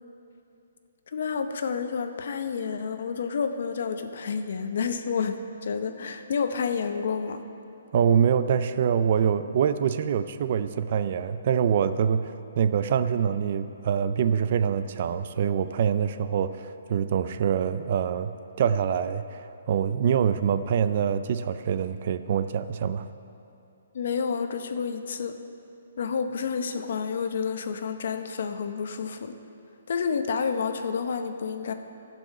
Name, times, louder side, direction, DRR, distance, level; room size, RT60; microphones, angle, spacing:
voice 1, 1.1-7.4 23.9-25.4 26.0-29.3 29.9-31.7, left 6 dB, 50° left, 8 dB, 0.7 m, -29 dB
voice 2, 7.9-23.1, right 8 dB, 35° right, 12 dB, 0.3 m, -25 dB
13.5 x 5.4 x 6.5 m, 2.7 s
hypercardioid pair, 170°, 0 cm